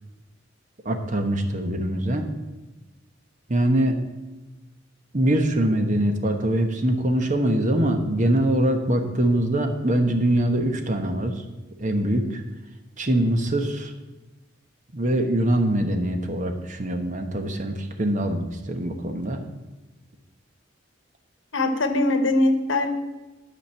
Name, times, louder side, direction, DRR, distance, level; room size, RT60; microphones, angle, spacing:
voice 1, 0.8-2.2 3.5-4.0 5.1-11.4 11.8-12.4 13.0-13.9 14.9-19.4, right 1 dB, 40° right, 5 dB, 1.1 m, -23 dB
voice 2, 21.5-22.9, left 2 dB, 75° left, 7 dB, 1.1 m, -21 dB
12.0 x 5.2 x 7.0 m, 1.1 s
head